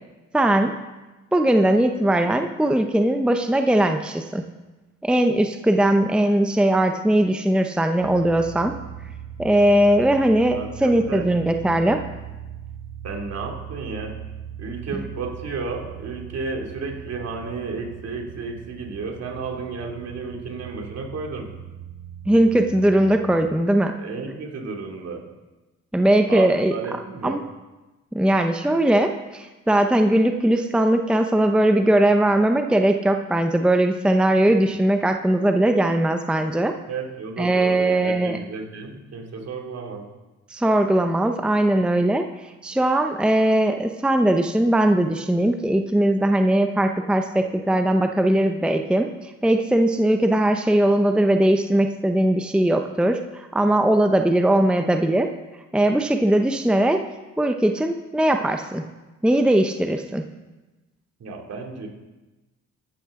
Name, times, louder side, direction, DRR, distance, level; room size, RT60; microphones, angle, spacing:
voice 1, 0.3-0.7 1.3-4.4 5.0-8.7 9.4-12.0 22.3-23.9 25.9-26.7 27.2-27.4 28.1-36.8 37.4-38.4 40.5-42.3 42.6-55.3 55.7-57.0 57.4-58.8 59.2-60.2, right 1 dB, 5° right, 5 dB, 0.7 m, -20 dB
sound 1, 8.0-23.6, right 9 dB, 85° right, 0.9 m, -39 dB
voice 2, 10.5-11.3 13.0-14.2 14.6-21.5 24.0-25.2 26.3-27.4 34.5-34.6 36.9-40.1 61.2-61.9, right 4 dB, 55° right, 2 dB, 2.6 m, -32 dB
14.5 x 12.0 x 3.7 m, 1.1 s
cardioid pair, 90°, 30 cm